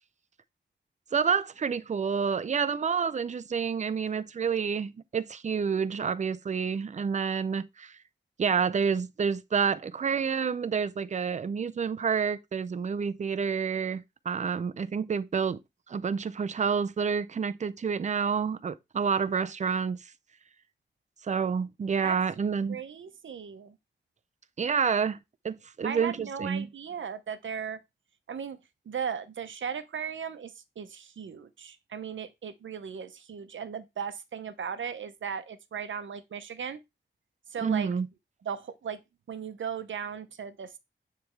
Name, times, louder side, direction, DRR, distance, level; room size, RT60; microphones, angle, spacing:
voice 1, 1.1-7.9 8.4-15.6 15.9-20.0 21.2-22.8 24.6-25.2 25.4-26.7 37.6-38.1, right 6 dB, 35° right, 0.4 m, -28 dB
voice 2, 22.7-23.8 25.8-27.8 28.3-28.6 28.9-36.8 37.5-37.9 38.4-39.0 39.3-40.8, right 7 dB, 80° right, 0.8 m, -37 dB
9.2 x 3.3 x 4.5 m
wide cardioid pair, 175°, 20 cm